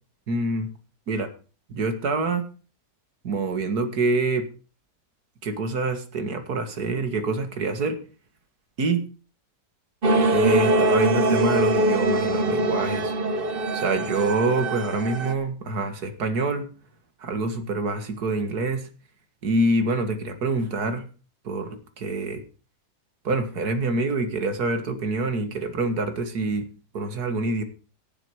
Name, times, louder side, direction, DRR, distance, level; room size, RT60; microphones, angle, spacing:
voice 1, 0.3-0.7 1.1-1.3 1.7-2.5 3.2-4.5 5.4-8.0 8.8-9.0 10.3-13.1 13.7-16.7 17.2-18.9 19.4-21.0 21.4-22.4 23.2-26.7 26.9-27.6, right 3 dB, 70° right, 8 dB, 2.4 m, -26 dB
sound 1, 10.0-15.3, right 1 dB, 40° right, 1.2 m, -22 dB
16.5 x 7.8 x 4.8 m, 0.37 s
omnidirectional pair, 1.7 m